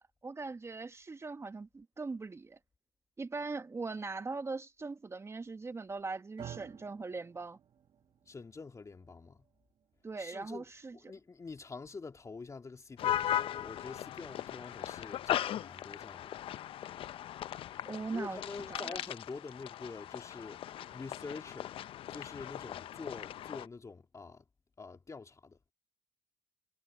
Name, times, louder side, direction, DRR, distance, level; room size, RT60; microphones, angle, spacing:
voice 1, 0.0-2.6 3.2-7.6 10.0-11.0 17.9-18.4 18.7-19.0, right 3 dB, 25° right, 1.0 m, -40 dB
sound 1, 6.4-14.6, right 9 dB, 55° right, 1.2 m, -55 dB
voice 2, 8.3-9.5 10.2-10.7 10.9-16.4 18.1-21.7 22.1-24.5 24.8-25.6, left 4 dB, 30° left, 2.8 m, -46 dB
sound 2, 13.0-23.7, left 11 dB, 60° left, 0.7 m, -38 dB
hypercardioid pair, 60°, 10 cm